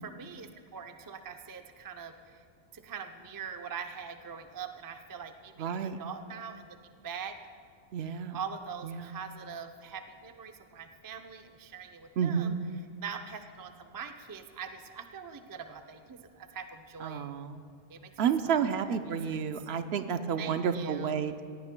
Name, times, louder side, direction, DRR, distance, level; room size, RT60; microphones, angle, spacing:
voice 1, 0.0-2.4 2.7-6.8 7.0-7.3 8.0-12.5 13.0-17.3 17.9-18.1 18.4-19.4 20.4-21.1, right 6 dB, 30° right, 6 dB, 0.4 m, -43 dB
voice 2, 5.6-6.0 7.9-8.4 8.8-9.1 12.2-12.6 17.0-17.6 18.2-21.4, right 7 dB, 70° right, 9 dB, 0.8 m, -30 dB
18.0 x 15.5 x 2.2 m, 2.1 s
omnidirectional pair, 1.2 m